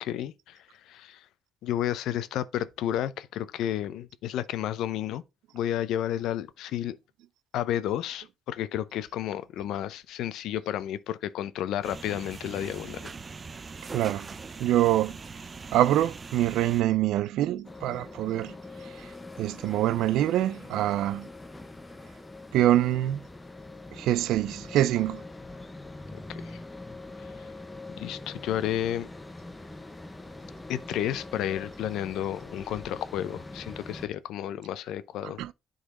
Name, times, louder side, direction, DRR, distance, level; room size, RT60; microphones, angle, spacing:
voice 1, 0.0-1.3 1.6-5.2 5.5-7.0 7.5-13.1 26.3-26.6 28.0-29.1 30.7-35.4, left 11 dB, 80° left, 0.6 m, -32 dB
sound 1, 11.8-16.8, right 4 dB, 30° right, 0.5 m, -42 dB
voice 2, 13.9-14.3 14.6-15.2 15.7-18.6 18.8-19.1 19.4-21.3 22.5-23.2 23.9-25.2 35.4-35.5, right 13 dB, 85° right, 0.4 m, -25 dB
sound 2, 17.6-34.1, left 2 dB, 15° left, 0.8 m, -43 dB
9.8 x 4.0 x 3.7 m
cardioid pair, 105°, 0 cm